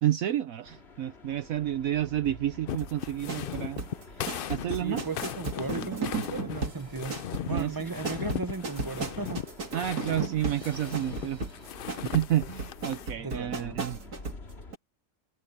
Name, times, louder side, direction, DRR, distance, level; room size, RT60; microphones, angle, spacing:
voice 1, 0.0-3.8 4.2-5.0 7.5-7.8 9.7-11.4 12.0-14.0, right 12 dB, 70° right, 1.1 m, -30 dB
sound 1, 0.6-14.8, left 3 dB, 45° left, 2.4 m, -48 dB
sound 2, 2.7-13.1, left 9 dB, 65° left, 0.5 m, -38 dB
sound 3, 2.8-14.4 14.7-14.8, right 4 dB, 85° right, 2.9 m, -36 dB
voice 2, 4.7-7.2 7.4-9.4 13.2-13.8, right 4 dB, 35° right, 0.3 m, -36 dB
omnidirectional pair, 1.6 m